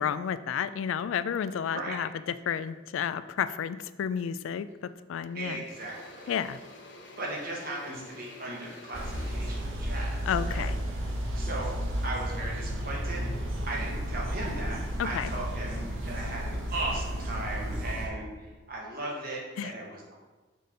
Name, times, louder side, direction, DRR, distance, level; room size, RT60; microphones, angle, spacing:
voice 1, 0.0-5.6 6.3-6.6 10.3-10.8 15.0-15.3 19.6-19.7, left 8 dB, 85° left, 14 dB, 0.3 m, -31 dB
Engine / Drill, 4.7-4.9 5.2-11.4, left 1 dB, 65° left, 0.9 m, -50 dB
voice 2, 5.3-6.2 7.2-11.1 11.3-11.7 12.0-13.3 13.7-20.2, right 2 dB, 45° right, -2 dB, 1.4 m, -37 dB
sound 1, 8.9-18.1, equal, 80° right, 1.1 m, -33 dB
6.5 x 5.1 x 3.9 m, 1.2 s
head